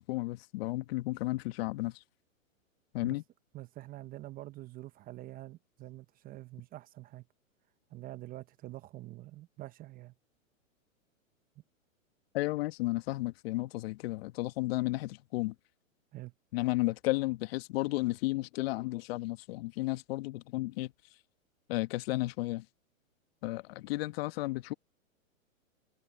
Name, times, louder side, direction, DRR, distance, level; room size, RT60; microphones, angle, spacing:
voice 1, 0.0-2.0 2.9-3.2 12.3-15.5 16.5-20.9 21.7-22.6 23.4-24.7, left 20 dB, 45° left, 1.6 m, -33 dB
voice 2, 3.5-7.2 7.9-10.1 16.1-16.3, right 17 dB, 20° right, 0.8 m, -46 dB
hypercardioid pair, 130°, 41 cm